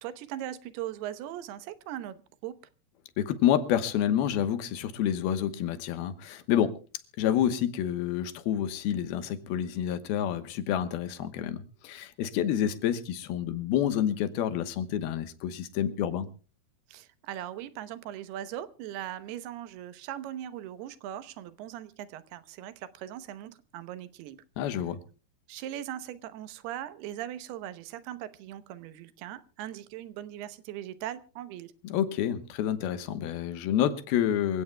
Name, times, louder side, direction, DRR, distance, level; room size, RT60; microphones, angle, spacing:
voice 1, 0.0-2.6 16.9-24.4 24.7-24.8 25.5-31.7, right 12 dB, 85° right, 2.9 m, -39 dB
voice 2, 3.2-6.8 7.2-16.3 24.6-25.0 31.8-34.6, left 10 dB, 80° left, 3.0 m, -28 dB
25.5 x 16.5 x 2.2 m
omnidirectional pair, 4.5 m